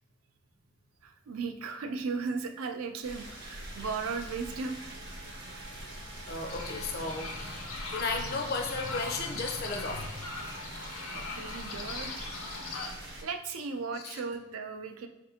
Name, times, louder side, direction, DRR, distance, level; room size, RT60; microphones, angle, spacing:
voice 1, 1.0-5.0 11.1-12.3 13.2-15.1, right 4 dB, 80° right, 6 dB, 0.4 m, -36 dB
sound 1, 3.0-13.2, right 1 dB, 55° right, 0.8 m, -44 dB
sound 2, 4.3-11.6, right 2 dB, 10° right, 0.4 m, -54 dB
voice 2, 6.3-7.6 7.9-10.2 14.0-14.2, left 3 dB, 50° left, 4 dB, 0.5 m, -34 dB
sound 3, 6.5-12.9, left 3 dB, 85° left, 0.6 m, -40 dB
4.2 x 2.5 x 2.7 m, 0.98 s
head